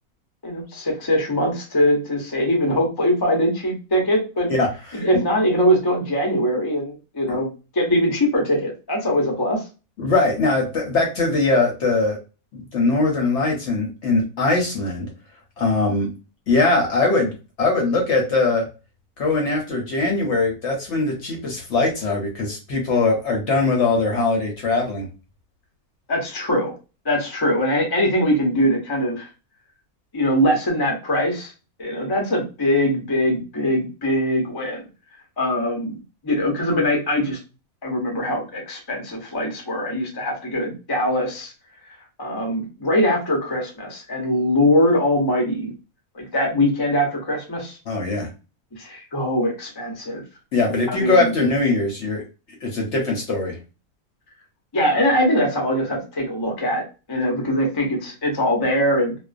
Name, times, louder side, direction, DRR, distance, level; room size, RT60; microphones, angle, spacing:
voice 1, 0.4-4.5 4.9-7.5 7.7-9.6 26.1-26.7 27.0-29.3 30.1-31.5 31.8-34.8 35.4-36.0 36.2-37.4 37.8-41.5 42.2-45.7 46.1-47.8 48.7-50.2 50.9-51.3 54.7-56.8 57.1-59.1, equal, 30° left, -1 dB, 0.4 m, -22 dB
voice 2, 4.5-5.0 7.3-7.4 10.0-12.2 12.5-15.1 15.6-16.1 16.5-18.7 19.2-25.1 47.9-48.3 50.5-52.2 52.6-53.6, left 3 dB, 60° left, 1 dB, 0.9 m, -21 dB
2.4 x 2.2 x 2.4 m, 0.31 s
omnidirectional pair, 1.5 m